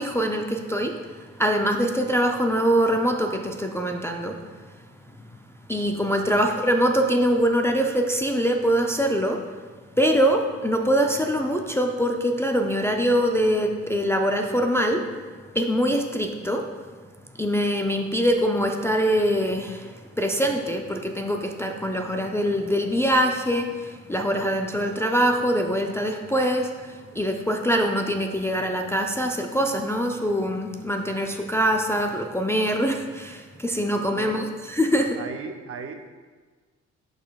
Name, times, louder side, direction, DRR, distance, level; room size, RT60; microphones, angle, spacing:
voice 1, 0.0-4.4 5.3-5.4 5.7-9.4 9.9-15.0 15.5-16.7 17.4-35.2, equal, 10° left, 2 dB, 0.4 m, -23 dB
voice 2, 33.9-34.4 35.2-36.1, right 5 dB, 50° right, 6 dB, 0.6 m, -36 dB
11.0 x 4.0 x 2.3 m, 1.4 s
cardioid pair, 90°, 30 cm